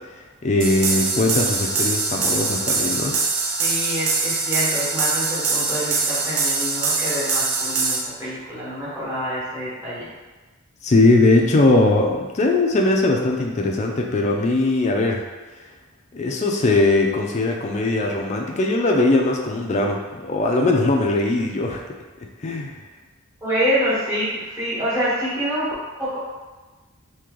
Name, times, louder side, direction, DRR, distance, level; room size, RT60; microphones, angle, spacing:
voice 1, 0.4-3.1 10.8-15.2 16.1-21.8 22.4-22.7, left 2 dB, 30° left, 1 dB, 0.4 m, -20 dB
sound 1, 0.6-8.0, right 4 dB, 80° right, 0.6 m, -23 dB
voice 2, 3.6-10.1 23.4-25.7 26.0-26.2, equal, 15° right, -11 dB, 1.3 m, -26 dB
3.0 x 2.8 x 3.7 m, 1.3 s
head